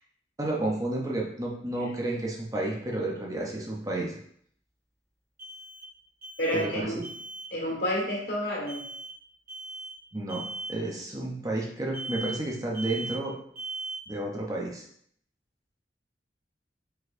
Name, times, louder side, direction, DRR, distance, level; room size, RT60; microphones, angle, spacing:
voice 1, 0.4-4.1 6.5-6.9 10.1-10.4 10.7-13.3 14.1-14.8, right 2 dB, 20° right, -2 dB, 0.7 m, -31 dB
sound 1, 2.1-2.2 5.4-6.0 6.2-6.8 7.0-7.5 8.7-9.2 9.5-10.0 10.3-10.8 11.9-12.5 12.7-13.3 13.6-14.1, right 2 dB, 55° right, 1.2 m, -39 dB
voice 2, 6.4-7.0 7.5-8.9, equal, 65° left, -2 dB, 1.5 m, -30 dB
4.5 x 4.3 x 2.6 m, 0.64 s
head